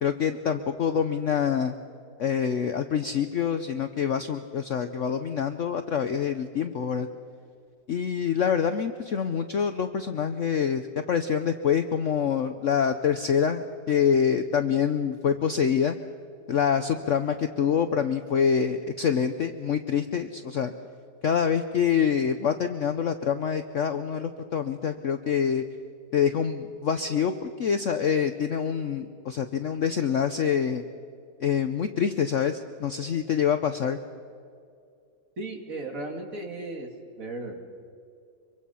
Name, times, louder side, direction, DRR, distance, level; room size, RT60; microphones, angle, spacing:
voice 1, 0.0-1.7 2.2-7.1 7.9-16.0 16.5-20.7 21.2-25.6 26.1-30.8 31.4-34.0, left 7 dB, 55° left, 8 dB, 0.9 m, -26 dB
voice 2, 35.4-36.9 37.2-37.6, right 2 dB, 50° right, 2 dB, 2.8 m, -35 dB
25.0 x 23.5 x 5.7 m, 2.4 s
omnidirectional pair, 1.9 m